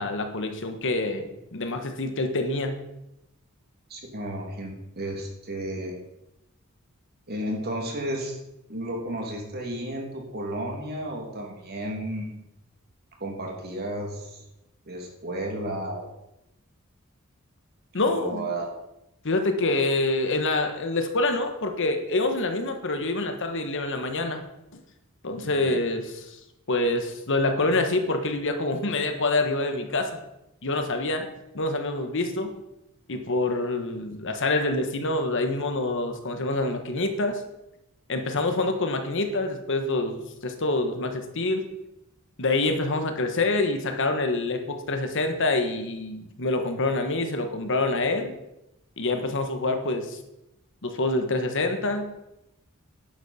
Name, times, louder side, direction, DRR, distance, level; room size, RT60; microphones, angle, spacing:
voice 1, 0.0-2.8 17.9-18.5 19.2-24.4 24.7-24.8 25.2-26.4 26.7-30.1 30.6-31.3 31.5-32.5 33.1-37.4 38.1-41.6 42.4-48.3 49.0-50.2 50.8-52.1, left 2 dB, 60° left, 6 dB, 1.4 m, -26 dB
voice 2, 3.9-6.0 7.3-8.4 8.7-12.5 13.2-14.4 14.9-16.1 18.0-18.7 25.4-25.8, right 1 dB, 50° right, 0 dB, 2.6 m, -33 dB
10.5 x 10.5 x 4.3 m, 0.89 s
head